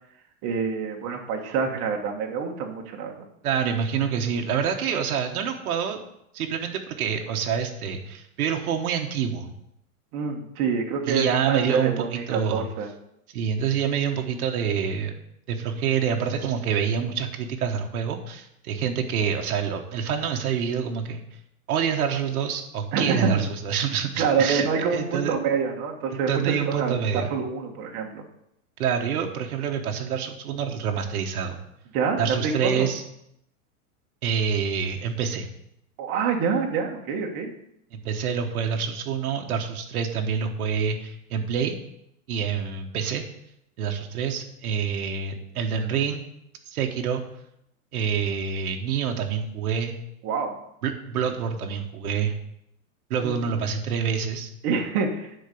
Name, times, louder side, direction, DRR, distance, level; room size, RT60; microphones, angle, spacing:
voice 1, 0.4-3.3 10.1-12.9 22.9-23.4 24.2-28.2 31.9-32.9 36.0-37.5 50.2-50.6 53.2-53.5 54.6-55.4, right 5 dB, 45° right, 1 dB, 1.8 m, -27 dB
voice 2, 3.4-6.0 6.3-9.5 11.1-12.7 13.3-15.1 15.5-21.2 21.7-24.7 24.9-25.3 26.1-27.3 28.8-31.6 32.2-33.0 34.2-35.5 37.9-41.8 42.3-43.2 43.8-46.2 46.7-47.2 47.9-49.9 50.8-52.3 53.1-54.5, right 7 dB, 75° right, 3 dB, 1.4 m, -27 dB
10.0 x 4.5 x 6.9 m, 0.77 s
hypercardioid pair, 130°, 44 cm